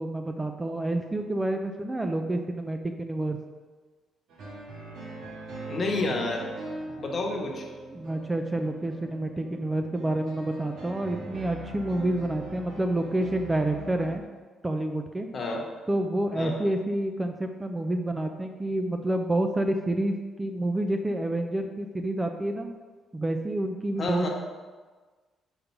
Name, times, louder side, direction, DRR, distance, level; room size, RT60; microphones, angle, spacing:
voice 1, 0.0-3.4 7.9-14.2 14.6-15.3 15.9-22.7 23.1-24.3, right 1 dB, 15° right, 5 dB, 0.5 m, -28 dB
sound 1, 4.3-14.2, right 2 dB, 80° right, 1.6 m, -41 dB
voice 2, 5.7-6.4 7.0-7.6 15.3-15.6 16.3-16.6 24.0-24.3, left 2 dB, 45° left, 0 dB, 1.2 m, -29 dB
5.4 x 3.7 x 5.8 m, 1.4 s
cardioid pair, 90°, 0 cm